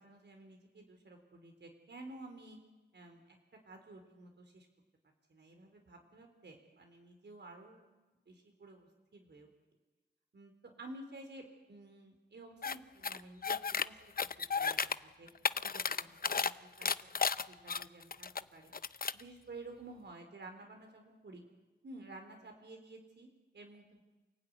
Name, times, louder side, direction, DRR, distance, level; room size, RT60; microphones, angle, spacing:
voice 1, 0.0-2.6 2.9-3.4 3.6-4.7 5.3-7.9 8.3-9.5 10.3-10.5 10.8-11.4 11.7-13.6 13.8-14.3 14.5-15.3 15.7-16.9 17.4-18.7 19.1-21.5 21.8-24.0, right 2 dB, 80° right, 4 dB, 4.3 m, -52 dB
sound 1, 12.6-12.8 13.0-13.9 14.2-15.0 15.3-16.5 16.8-18.4 18.7-19.2, left 5 dB, 55° left, 0.8 m, -33 dB
28.5 x 17.0 x 9.8 m, 1.2 s
wide cardioid pair, 65°, 18 cm